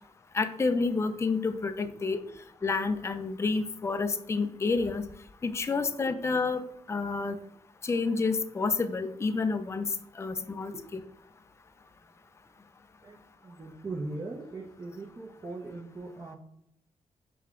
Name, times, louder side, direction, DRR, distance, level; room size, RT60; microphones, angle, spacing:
voice 1, 0.3-2.2 2.6-5.1 5.4-6.6 6.9-7.4 7.8-9.9 10.2-11.0, left 4 dB, 20° left, 10 dB, 0.4 m, -29 dB
voice 2, 13.4-16.4, right 2 dB, 30° right, -2 dB, 0.7 m, -39 dB
5.6 x 2.3 x 3.6 m, 0.74 s
cardioid pair, 75°, 13 cm